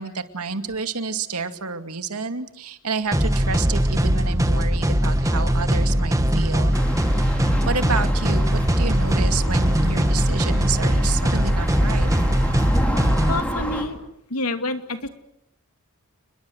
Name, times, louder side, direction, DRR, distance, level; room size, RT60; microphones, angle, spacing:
voice 1, 0.0-6.8 7.1-12.1, right 4 dB, 90° right, 7 dB, 2.4 m, -30 dB
sound 1, 3.1-13.4, equal, 15° right, 1.7 m, -20 dB
sound 2, 6.7-13.8, equal, 5° left, 4.6 m, -29 dB
voice 2, 13.3-14.0 14.3-15.1, left 2 dB, 85° left, 7 dB, 2.7 m, -27 dB
29.5 x 22.0 x 8.1 m, 0.81 s
head